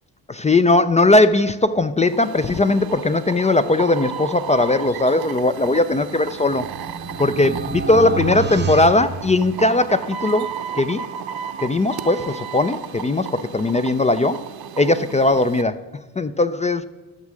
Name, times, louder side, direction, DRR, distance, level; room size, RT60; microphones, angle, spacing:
voice 1, 0.3-6.7 7.2-11.0 11.6-14.5 14.8-15.8 16.2-16.8, left 2 dB, 15° left, 12 dB, 0.4 m, -19 dB
sound 1, 2.0-15.6, right 8 dB, 55° right, 0.9 m, -34 dB
sound 2, 6.1-10.0, right 6 dB, 25° right, 0.8 m, -29 dB
12.0 x 6.3 x 6.3 m, 1.2 s
supercardioid pair, 60°, 45 cm